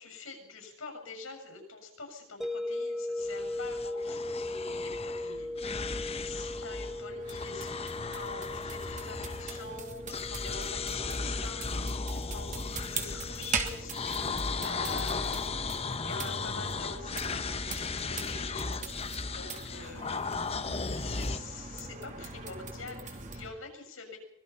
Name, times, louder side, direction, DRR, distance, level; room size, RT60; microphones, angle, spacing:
voice 1, 0.0-20.4 20.9-24.2, left 4 dB, 70° left, 4 dB, 7.1 m, -46 dB
sound 1, 2.4-17.3, left 2 dB, ahead, 1.1 m, -40 dB
sound 2, 3.2-7.0 7.3-9.8 10.1-21.4, left 4 dB, 30° left, 0.9 m, -36 dB
sound 3, 5.0-23.5, right 4 dB, 35° right, 2.8 m, -42 dB
24.5 x 19.5 x 5.7 m, 0.73 s
head